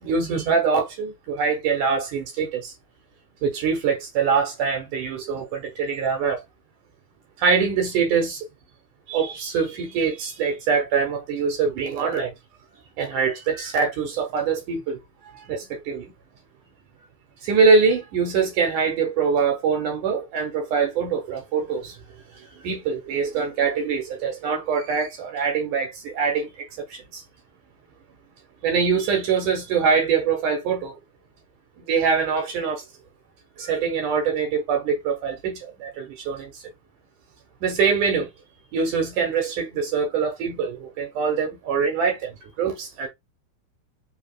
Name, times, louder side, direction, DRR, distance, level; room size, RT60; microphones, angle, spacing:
voice 1, 0.0-2.7 3.4-6.4 7.4-8.5 9.1-12.3 13.0-15.0 15.3-16.1 17.4-22.0 22.6-27.2 28.6-31.0 31.8-32.8 33.6-36.6 37.6-38.3 38.7-43.1, right 5 dB, 70° right, 2.2 m, -24 dB
5.1 x 3.4 x 2.3 m
omnidirectional pair, 4.2 m